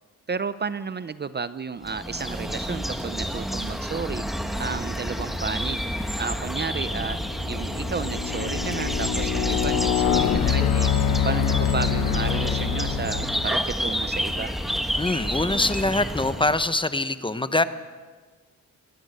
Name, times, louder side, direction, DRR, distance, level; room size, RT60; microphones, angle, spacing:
voice 1, 0.3-4.2 4.6-5.8 6.2-7.2 7.5-14.5, right 5 dB, 35° right, 14 dB, 0.6 m, -32 dB
sound 1, 1.8-16.7, equal, ahead, 1.4 m, -29 dB
sound 2, 6.0-6.2 6.8-13.6, left 9 dB, 80° left, 1.1 m, -26 dB
voice 2, 15.0-17.6, left 2 dB, 15° left, 12 dB, 1.0 m, -24 dB
22.0 x 17.5 x 8.1 m, 1.4 s
cardioid pair, 105°, 32 cm